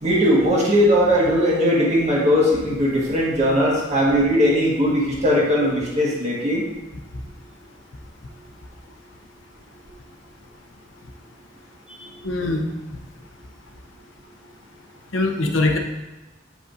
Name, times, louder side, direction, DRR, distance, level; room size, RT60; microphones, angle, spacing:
voice 1, 0.0-6.6 12.0-12.1, equal, 35° right, -4 dB, 1.6 m, -19 dB
voice 2, 12.2-12.6 15.1-15.8, left 2 dB, 90° left, 3 dB, 0.8 m, -21 dB
7.4 x 5.5 x 2.7 m, 1.1 s
head